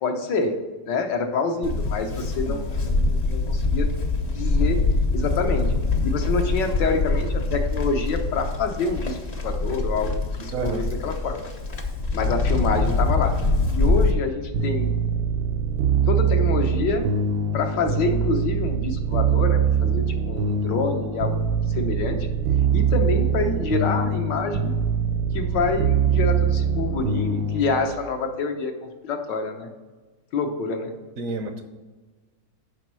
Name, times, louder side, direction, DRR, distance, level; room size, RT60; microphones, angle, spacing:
voice 1, 0.0-0.6 0.9-3.9 4.2-4.8 5.1-5.7 6.0-11.5 12.1-13.4 13.7-14.9 16.1-17.1 17.5-21.4 21.7-22.3 22.7-24.8 25.3-29.7 30.3-30.9, left 4 dB, 75° left, 5 dB, 1.6 m, -27 dB
Livestock farm animals working animals, 1.6-14.1, left 3 dB, 50° left, 0.4 m, -24 dB
voice 2, 10.5-11.0 31.2-31.6, right 4 dB, 60° right, 7 dB, 0.9 m, -30 dB
sound 1, 14.5-27.9, right 6 dB, 85° right, 1.4 m, -23 dB
7.5 x 5.3 x 6.1 m, 1.3 s
omnidirectional pair, 1.9 m